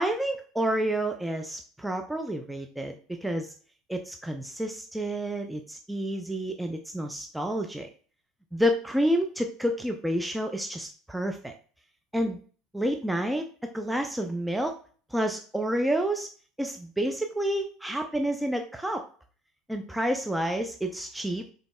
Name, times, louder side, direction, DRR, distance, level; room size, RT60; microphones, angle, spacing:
voice 1, 0.0-3.5 3.9-7.9 8.5-11.5 12.1-12.4 12.7-14.7 15.1-16.3 16.6-19.0 19.7-21.5, right 1 dB, 5° right, 4 dB, 0.5 m, -29 dB
5.2 x 4.0 x 2.3 m, 0.43 s
figure-of-eight pair, 70°, 0 cm